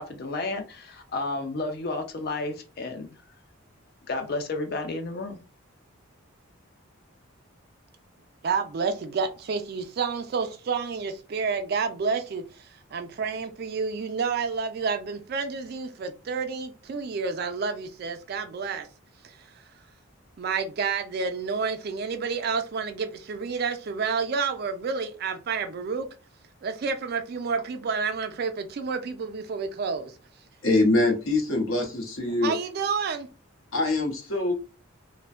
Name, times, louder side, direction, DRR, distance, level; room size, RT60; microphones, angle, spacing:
voice 1, 0.0-3.2 4.1-5.4, left 2 dB, 45° left, 0.4 m, -32 dB
voice 2, 8.4-12.6 12.9-18.9 20.4-26.1 26.6-30.1 32.4-33.3, right 5 dB, 50° right, 0.3 m, -29 dB
voice 3, 30.6-32.5 33.7-34.5, left 2 dB, 75° left, 0.8 m, -24 dB
2.5 x 2.1 x 2.3 m
head